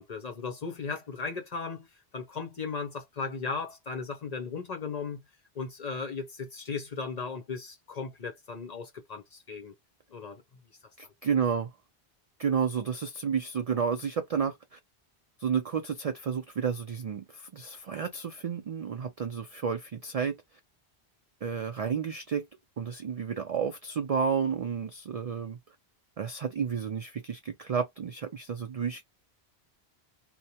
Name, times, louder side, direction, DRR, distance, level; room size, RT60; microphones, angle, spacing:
voice 1, 0.0-1.9 2.1-5.2 5.5-9.7 10.1-10.4, left 5 dB, 45° left, 0.7 m, -36 dB
voice 2, 11.0-11.7 12.4-14.8 15.4-20.6 21.4-22.5 22.8-25.6 26.2-29.0, right 6 dB, 60° right, 0.4 m, -31 dB
2.9 x 2.1 x 2.8 m
omnidirectional pair, 1.1 m